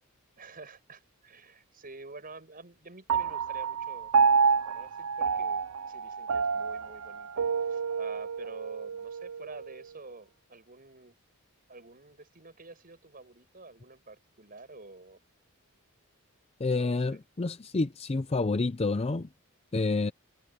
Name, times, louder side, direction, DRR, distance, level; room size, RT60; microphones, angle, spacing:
voice 1, 0.4-7.4 7.7-11.2 11.7-15.2 16.7-17.2, right 3 dB, 40° right, 6.8 m, -49 dB
Piano, 3.1-9.8, right 5 dB, 85° right, 0.5 m, -28 dB
voice 2, 16.6-19.3 19.7-20.1, left 3 dB, 30° left, 0.5 m, -28 dB
head